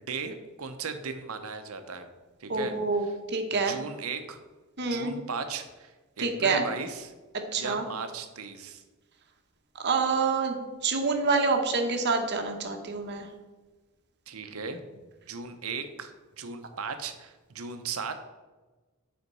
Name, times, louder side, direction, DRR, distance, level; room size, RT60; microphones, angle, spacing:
voice 1, 0.0-2.1 2.4-3.2 3.5-4.4 4.9-7.1 7.6-8.8 14.3-18.1, right 5 dB, 75° right, 8 dB, 0.8 m, -37 dB
voice 2, 2.5-3.7 4.8-5.1 6.2-6.6 7.5-7.8 9.8-10.6 10.8-13.3, right 4 dB, 50° right, 4 dB, 1.0 m, -27 dB
8.2 x 4.3 x 5.5 m, 1.2 s
head